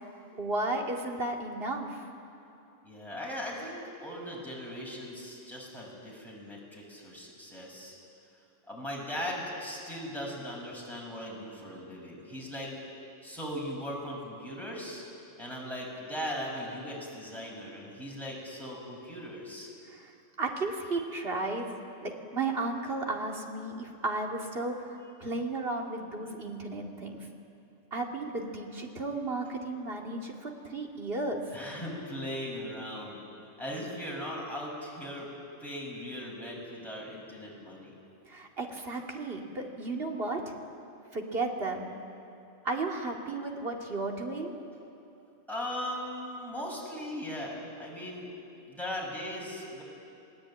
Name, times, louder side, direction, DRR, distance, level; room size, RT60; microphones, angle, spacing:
voice 1, 0.4-2.0 19.9-20.1 20.4-27.3 27.9-31.5 38.3-40.6 41.1-41.9 42.6-44.5, right 2 dB, 45° right, 1 dB, 2.7 m, -34 dB
voice 2, 2.8-3.7 4.0-8.0 8.7-12.7 13.2-15.0 15.4-19.7 31.5-33.2 33.6-35.3 35.6-38.0 45.5-48.3 48.7-49.8, equal, ahead, -4 dB, 6.5 m, -38 dB
28.0 x 19.5 x 8.9 m, 2.9 s
omnidirectional pair, 1.3 m